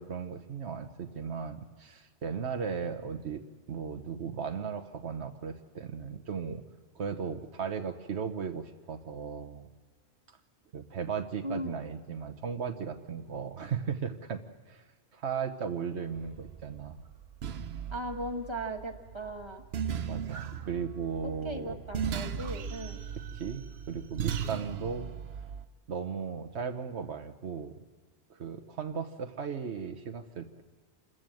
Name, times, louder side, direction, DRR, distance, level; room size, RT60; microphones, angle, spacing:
voice 1, 0.0-6.6 6.9-9.7 10.7-14.4 14.7-14.8 15.1-17.0 20.1-21.8 23.3-23.6 23.9-25.1 25.9-27.7 28.3-30.6, right 6 dB, 90° right, 6 dB, 1.3 m, -36 dB
voice 2, 11.4-11.8 17.9-19.6 21.4-23.0, right 1 dB, 25° right, 4 dB, 1.6 m, -37 dB
sound 1, 16.1-25.7, right 8 dB, 70° right, 1.0 m, -38 dB
27.0 x 14.0 x 7.7 m, 1.5 s
omnidirectional pair, 1.1 m